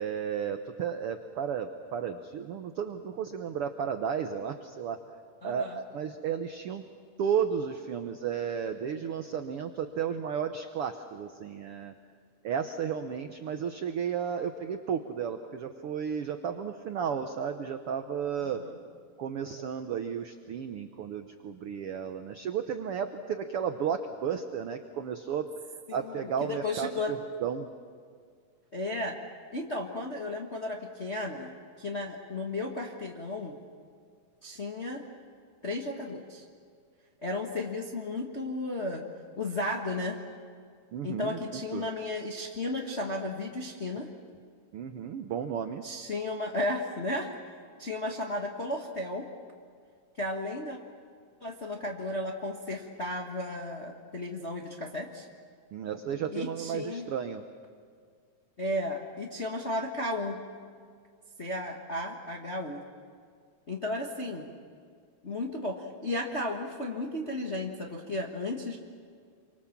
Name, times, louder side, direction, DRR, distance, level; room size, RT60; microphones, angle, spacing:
voice 1, 0.0-5.0 5.4-6.8 7.2-11.9 12.4-18.6 19.2-25.4 25.9-27.7 40.9-41.9 44.7-45.9 55.7-57.4, right 7 dB, 85° right, 7 dB, 1.2 m, -33 dB
voice 2, 5.4-5.8 18.4-18.8 25.9-27.1 28.7-29.2 29.5-31.5 31.8-33.5 34.4-35.0 35.6-36.4 37.2-39.0 39.3-40.2 41.0-44.1 45.8-47.3 47.8-49.3 50.2-50.8 51.4-55.3 56.3-57.1 58.6-60.4 61.4-62.8 63.7-64.5 65.2-68.8, left 2 dB, 45° left, 0 dB, 0.8 m, -34 dB
27.5 x 24.5 x 7.3 m, 2.1 s
omnidirectional pair, 3.9 m